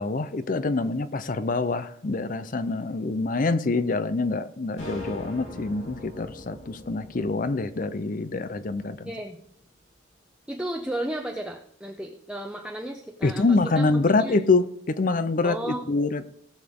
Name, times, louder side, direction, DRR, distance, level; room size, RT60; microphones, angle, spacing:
voice 1, 0.0-9.1 13.2-16.3, left 3 dB, 40° left, 13 dB, 0.5 m, -25 dB
sound 1, 4.8-9.2, left 2 dB, 70° left, 4.8 m, -41 dB
voice 2, 9.0-9.4 10.5-14.4 15.4-15.8, right 1 dB, 5° right, 1 dB, 0.7 m, -34 dB
18.0 x 6.8 x 3.6 m, 0.68 s
head